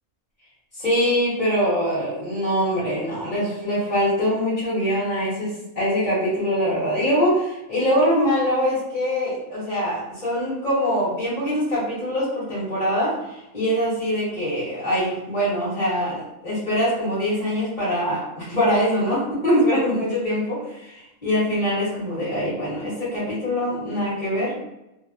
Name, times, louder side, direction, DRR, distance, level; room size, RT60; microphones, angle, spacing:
voice 1, 0.8-13.1 13.5-24.5, equal, 35° left, -12 dB, 1.6 m, -23 dB
3.7 x 2.3 x 2.7 m, 0.86 s
omnidirectional pair, 1.4 m